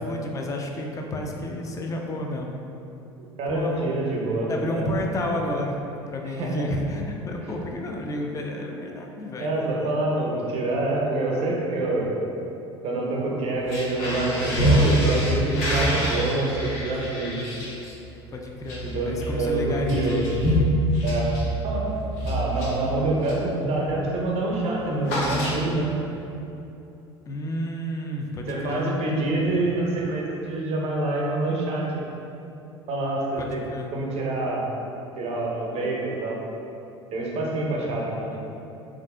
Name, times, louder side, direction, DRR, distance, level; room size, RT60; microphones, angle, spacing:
voice 1, 0.0-2.6 3.5-3.9 4.5-10.0 18.3-20.2 27.3-29.0 33.4-33.9 37.8-38.4, left 1 dB, 25° left, 1 dB, 0.4 m, -31 dB
voice 2, 3.4-4.9 6.2-6.6 9.4-12.1 12.8-17.4 18.8-20.3 21.0-21.3 21.6-21.9 22.2-25.9 28.5-31.8 32.9-33.6 33.9-34.7 35.2-36.4 37.1-38.3, right 2 dB, 45° right, -3 dB, 0.7 m, -26 dB
sound 1, 13.6-23.5 23.9-24.2 24.4-26.0, equal, 65° left, 0.7 m, -26 dB
3.4 x 2.5 x 2.2 m, 2.8 s
hypercardioid pair, 70°, 14 cm